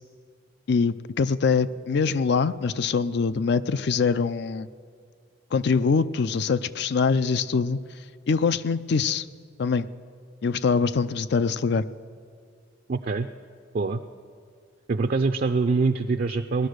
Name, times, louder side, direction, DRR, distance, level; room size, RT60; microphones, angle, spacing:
voice 1, 0.7-4.7 5.5-7.8 8.3-9.2 9.6-9.9 10.4-11.8, left 5 dB, 60° left, 15 dB, 0.4 m, -23 dB
voice 2, 12.9-13.3 13.7-14.0 14.9-16.7, right 4 dB, 50° right, 6 dB, 0.4 m, -24 dB
17.5 x 11.5 x 6.5 m, 2.2 s
head